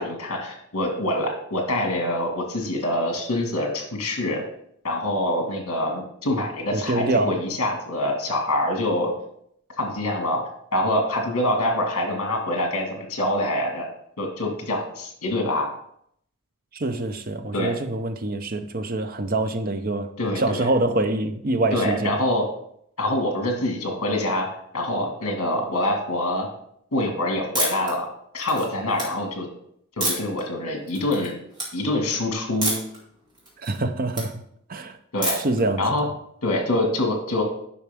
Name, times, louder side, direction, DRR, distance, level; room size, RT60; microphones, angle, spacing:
voice 1, 0.0-4.4 4.8-9.1 9.8-10.4 10.7-13.9 14.2-15.7 17.5-17.7 20.2-20.7 21.7-22.5 23.0-26.5 26.9-28.1 28.3-29.5 30.0-31.3 31.7-32.7 35.1-35.4 35.8-36.1 36.4-37.4, left 1 dB, 70° left, 1.9 m, -25 dB
voice 2, 6.7-7.4 16.7-20.1 20.4-22.1 33.6-34.4 34.7-35.0 35.4-36.1, right 2 dB, 40° right, 0.6 m, -25 dB
sound 1, 27.5-27.9 28.4-29.0 30.0-30.4 30.9-31.3 31.5-31.7 32.6-33.0 33.3-34.3 35.2-35.6, right 1 dB, 20° right, 2.2 m, -27 dB
9.9 x 5.6 x 3.5 m
head